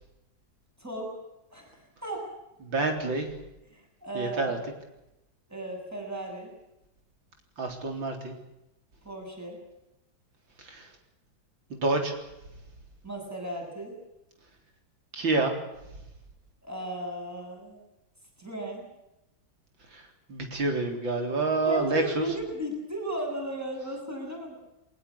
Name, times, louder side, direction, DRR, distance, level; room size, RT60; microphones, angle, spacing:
voice 1, 0.8-1.1 1.5-2.3 3.7-4.5 5.5-6.5 9.0-9.6 13.0-13.9 16.6-17.8 18.4-18.9 21.6-24.5, right 1 dB, 5° right, 0 dB, 8.0 m, -35 dB
voice 2, 2.6-3.3 4.1-4.6 7.6-8.3 10.6-10.9 11.7-12.1 15.1-15.5 19.9-20.0 20.3-22.3, right 3 dB, 75° right, 4 dB, 4.6 m, -28 dB
22.0 x 19.5 x 8.6 m, 0.90 s
omnidirectional pair, 2.1 m